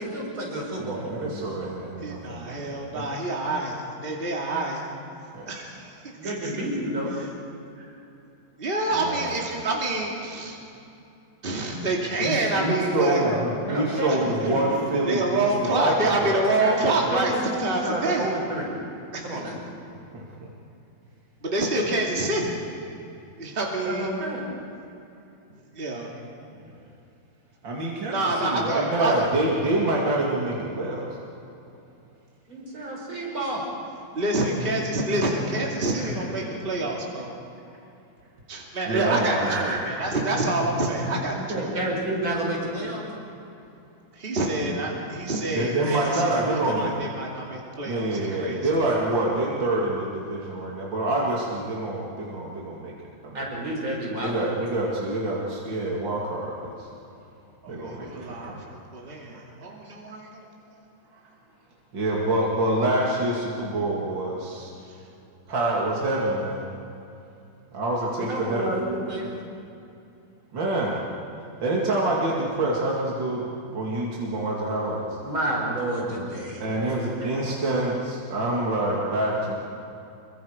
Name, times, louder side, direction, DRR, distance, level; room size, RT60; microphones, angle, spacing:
voice 1, 0.0-1.7 6.2-7.1 13.2-14.8 16.6-18.8 19.2-19.5 23.8-24.4 32.5-33.6 41.5-43.0 53.3-54.3 68.2-69.3 75.2-76.6, right 1 dB, 85° right, -2 dB, 5.9 m, -30 dB
voice 2, 0.7-2.7 2.9-3.1 5.3-5.5 7.8-7.9 9.0-9.4 12.2-16.4 20.1-20.5 27.6-31.2 38.9-40.1 45.5-47.1 47.8-52.9 53.2-53.5 54.2-56.9 57.7-58.7 61.9-64.7 65.5-66.6 67.7-68.7 70.5-71.0 71.6-75.2 76.6-79.6, right 2 dB, 65° right, -4 dB, 3.1 m, -26 dB
voice 3, 2.0-4.8 5.5-6.5 8.6-10.6 11.4-13.2 14.1-14.5 15.1-18.3 19.1-19.5 21.4-22.5 23.4-24.2 25.7-26.1 28.1-29.1 34.1-37.3 38.5-41.8 44.1-48.1 48.4-48.7 57.6-58.5 58.9-60.4, right 2 dB, 25° right, -2 dB, 2.6 m, -27 dB
27.0 x 23.5 x 5.1 m, 2.7 s
omnidirectional pair, 2.2 m